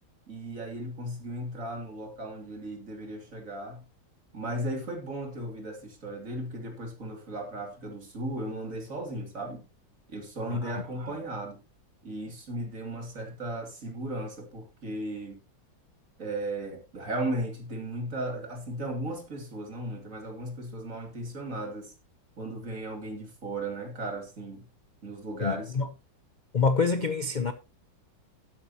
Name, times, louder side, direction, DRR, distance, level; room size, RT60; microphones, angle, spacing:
voice 1, 0.3-3.8 4.3-9.6 10.1-11.6 12.0-15.4 16.2-21.9 22.4-24.6 25.0-25.9, right 1 dB, 45° right, 3.2 m, -36 dB
voice 2, 10.5-10.8 25.4-25.9 26.5-27.5, left 4 dB, 50° left, 0.5 m, -27 dB
12.5 x 10.5 x 2.9 m
omnidirectional pair, 2.0 m